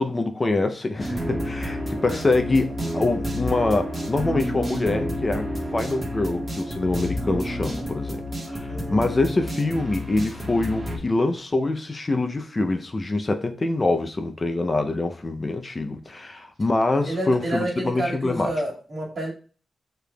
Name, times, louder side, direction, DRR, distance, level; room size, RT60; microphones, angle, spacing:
voice 1, 0.0-18.5, left 2 dB, 30° left, 0.4 m, -25 dB
sound 1, 1.0-11.0, equal, 20° right, 1.3 m, -30 dB
voice 2, 8.6-9.1 17.0-19.3, right 1 dB, 50° right, 1.9 m, -29 dB
6.9 x 3.3 x 2.2 m
wide cardioid pair, 115°, 0 cm